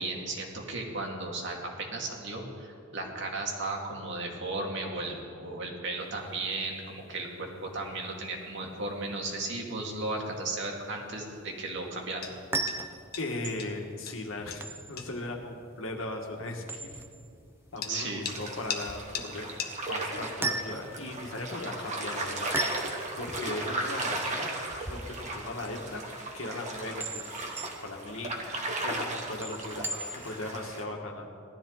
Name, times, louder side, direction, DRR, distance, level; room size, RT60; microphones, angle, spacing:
voice 1, 0.0-12.3 17.9-18.3, right 2 dB, 65° right, 0 dB, 2.2 m, -35 dB
sound 1, 6.0-24.3, left 6 dB, 50° left, 1.3 m, -46 dB
sound 2, 12.2-30.5, right 2 dB, 10° right, 0.6 m, -40 dB
voice 2, 13.2-17.0 17.7-19.5 19.9-22.5 23.2-24.5 24.8-26.0 26.3-28.4 28.8-31.3, left 2 dB, 85° left, 1 dB, 1.9 m, -38 dB
sound 3, 18.2-30.8, right 2 dB, 35° right, 1.6 m, -36 dB
18.0 x 12.5 x 4.0 m, 2.3 s
head